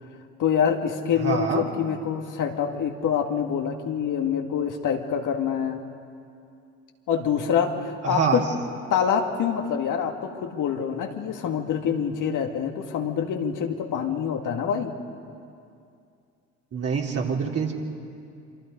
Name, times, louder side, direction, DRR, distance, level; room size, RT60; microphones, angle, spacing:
voice 1, 0.4-5.8 7.1-8.5 8.9-15.0, left 7 dB, 55° left, 3 dB, 2.2 m, -26 dB
voice 2, 1.2-1.6 8.0-8.4 16.7-17.7, right 6 dB, 40° right, -1 dB, 3.6 m, -25 dB
27.0 x 26.0 x 5.3 m, 2.5 s
hypercardioid pair, 60°, 38 cm